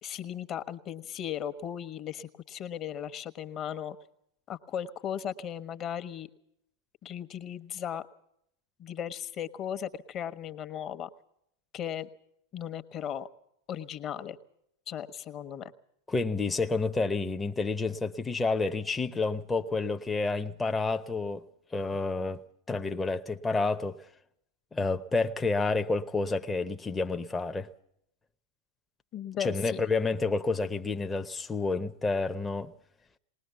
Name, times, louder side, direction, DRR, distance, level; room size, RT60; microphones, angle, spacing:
voice 1, 0.0-4.0 4.5-6.3 7.0-8.1 8.8-11.1 11.7-12.1 12.5-13.3 13.7-14.4 14.9-15.7 29.1-29.8, left 9 dB, 30° left, 1.3 m, -36 dB
voice 2, 16.1-21.4 21.7-22.4 22.7-24.0 24.7-27.7 29.4-32.7, left 3 dB, 10° left, 0.9 m, -29 dB
20.5 x 19.5 x 7.1 m
figure-of-eight pair, 90°, 0 cm